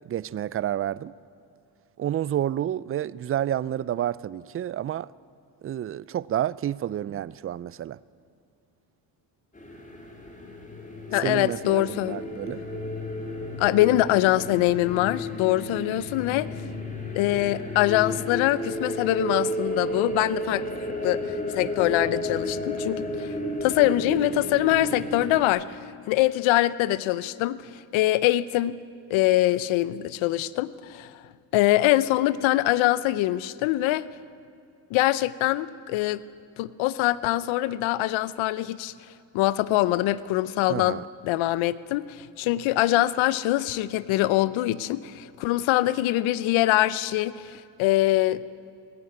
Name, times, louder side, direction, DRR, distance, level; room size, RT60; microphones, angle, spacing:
voice 1, 0.1-1.1 2.0-5.1 5.6-8.0 11.2-12.6 40.7-41.0, right 11 dB, 30° right, 0.4 m, -29 dB
sound 1, 9.6-25.4, left 1 dB, 15° left, 3.8 m, -32 dB
voice 2, 11.1-12.2 13.6-16.5 17.1-20.7 21.0-21.2 21.5-23.3 23.6-25.8 26.1-27.6 27.9-28.8 29.1-31.1 31.5-34.1 34.9-36.2 36.6-38.9 39.3-48.4, left 16 dB, 80° left, 0.8 m, -23 dB
18.5 x 15.5 x 9.6 m
supercardioid pair, 85°, 47 cm